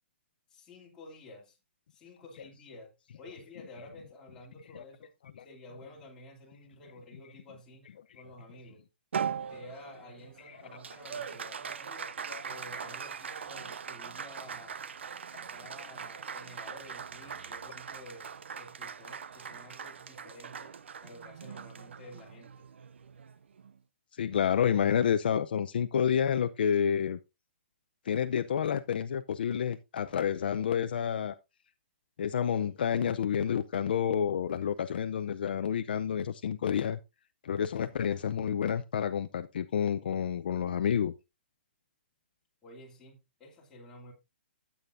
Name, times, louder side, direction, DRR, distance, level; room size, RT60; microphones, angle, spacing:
voice 1, 0.5-1.6 1.9-5.1 5.4-7.9 8.1-8.9 9.5-12.1 12.4-14.9 15.4-22.7 42.6-44.1, left 1 dB, 10° left, 2.7 m, -51 dB
Applause, 9.1-23.8, right 7 dB, 85° right, 0.7 m, -41 dB
voice 2, 24.2-27.2 28.1-31.3 32.2-37.0 37.4-41.1, left 8 dB, 55° left, 0.6 m, -29 dB
12.5 x 8.6 x 2.6 m
hypercardioid pair, 170°, 6 cm